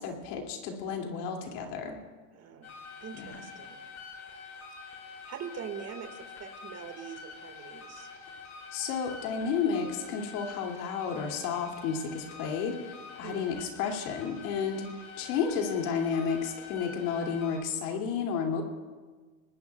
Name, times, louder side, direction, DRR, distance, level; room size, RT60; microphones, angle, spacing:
voice 1, 0.0-2.0 3.1-3.5 8.7-18.6, left 6 dB, 75° left, 2 dB, 2.7 m, -32 dB
voice 2, 2.3-2.7 3.0-3.8 4.9-5.0 5.3-8.1 13.2-13.5 14.8-14.9, right 7 dB, 35° right, 5 dB, 1.9 m, -43 dB
sound 1, 2.6-17.6, left 5 dB, 35° left, 4.9 m, -46 dB
26.0 x 19.5 x 2.4 m, 1.4 s
supercardioid pair, 115°, 47 cm